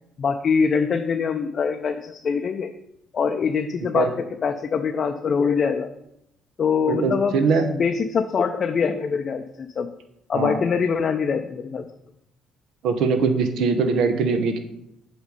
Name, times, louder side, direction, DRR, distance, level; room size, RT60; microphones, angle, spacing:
voice 1, 0.2-2.7 3.1-5.9 6.6-7.3 7.7-9.9 10.3-11.9, left 6 dB, 50° left, 5 dB, 0.4 m, -23 dB
voice 2, 6.9-7.7 10.3-10.6 12.8-14.6, right 4 dB, 75° right, 7 dB, 0.8 m, -21 dB
8.0 x 3.2 x 5.3 m, 0.80 s
cardioid pair, 80°, 0 cm